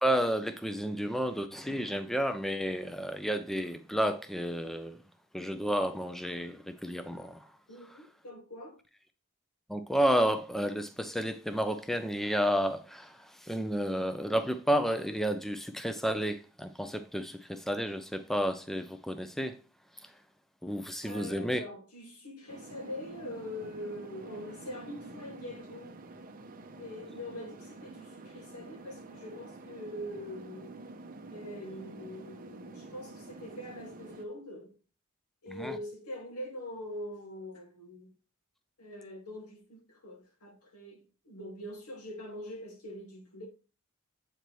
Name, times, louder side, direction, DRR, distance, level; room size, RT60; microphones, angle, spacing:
voice 1, 0.0-5.0 5.3-7.4 9.7-13.1 13.5-19.5 20.6-21.6 35.5-35.7, equal, ahead, 0.4 m, -31 dB
voice 2, 7.7-8.8 21.0-26.0 26.8-30.8 31.3-34.8 35.4-38.1 38.8-43.5, left 1 dB, 85° left, 2.1 m, -43 dB
sound 1, 22.5-34.2, right 2 dB, 40° right, 0.6 m, -48 dB
7.9 x 4.5 x 3.0 m
head